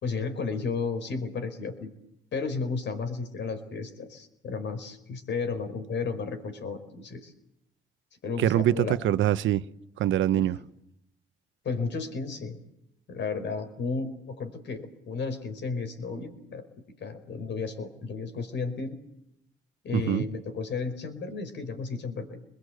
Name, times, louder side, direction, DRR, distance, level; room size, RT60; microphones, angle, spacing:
voice 1, 0.0-1.9 2.3-7.3 8.2-9.0 10.3-10.5 11.6-12.6 13.1-16.7 17.0-19.0 19.8-22.4, left 4 dB, 65° left, 4.9 m, -33 dB
voice 2, 8.4-9.7 10.0-10.6 19.9-20.2, right 12 dB, 80° right, 0.9 m, -24 dB
30.0 x 21.5 x 8.0 m
cardioid pair, 90°, 20 cm